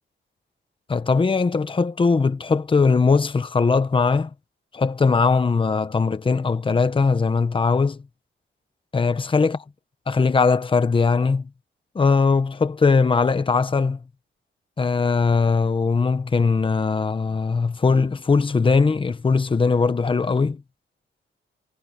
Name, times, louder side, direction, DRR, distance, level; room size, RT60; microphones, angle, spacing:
voice 1, 0.9-4.3 4.7-8.0 8.9-9.6 10.1-11.5 11.9-14.0 14.8-20.6, left 4 dB, 25° left, 1.1 m, -20 dB
wide cardioid pair, 145°, 21 cm